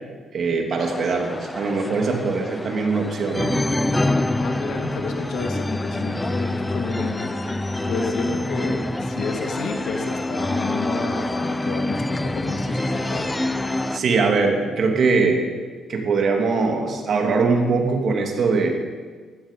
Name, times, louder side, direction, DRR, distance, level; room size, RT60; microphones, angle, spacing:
voice 1, 0.3-3.6 13.9-15.4 15.9-18.7, right 4 dB, 55° right, 2 dB, 2.6 m, -21 dB
sound 1, 0.8-14.0, left 2 dB, 15° left, 0.8 m, -26 dB
voice 2, 4.4-7.5 7.9-13.3, left 4 dB, 75° left, 4 dB, 2.0 m, -31 dB
15.0 x 12.0 x 5.4 m, 1.5 s
cardioid pair, 90°, 0 cm